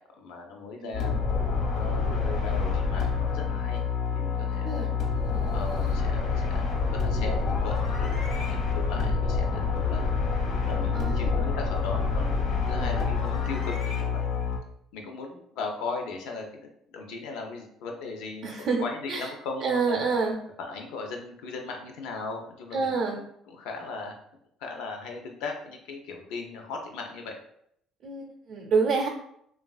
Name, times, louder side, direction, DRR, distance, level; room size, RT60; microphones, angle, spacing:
voice 1, 0.2-1.2 1.7-3.9 4.1-4.9 5.5-8.2 8.5-10.1 10.6-14.3 14.9-18.5 18.8-20.0 20.6-24.1 24.6-27.4, left 4 dB, 85° left, 2 dB, 0.5 m, -38 dB
sound 1, 0.9-14.6, left 5 dB, 60° left, 0.9 m, -27 dB
voice 2, 4.6-5.0 10.9-11.3 12.8-12.9 18.4-18.8 19.1-19.3 19.6-20.4 22.7-23.2 28.0-29.1, right 4 dB, 55° right, -2 dB, 0.5 m, -27 dB
3.1 x 2.3 x 2.3 m, 0.71 s
cardioid pair, 145°, 0 cm